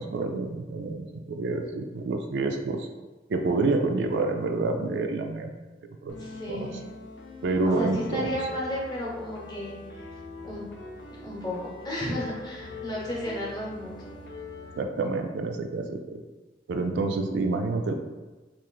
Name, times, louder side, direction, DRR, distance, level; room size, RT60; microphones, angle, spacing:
voice 1, 0.0-2.9 3.3-5.5 6.0-6.1 6.5-6.7 7.4-8.3 14.8-16.2 16.7-17.9, right 3 dB, 70° right, 5 dB, 0.3 m, -28 dB
sound 1, 6.1-14.8, left 4 dB, 70° left, 0.5 m, -42 dB
voice 2, 6.2-6.8 7.6-10.1 10.4-10.6 11.1-14.1 14.6-14.7, equal, 25° left, -5 dB, 0.9 m, -33 dB
3.1 x 2.5 x 3.9 m, 1.2 s
head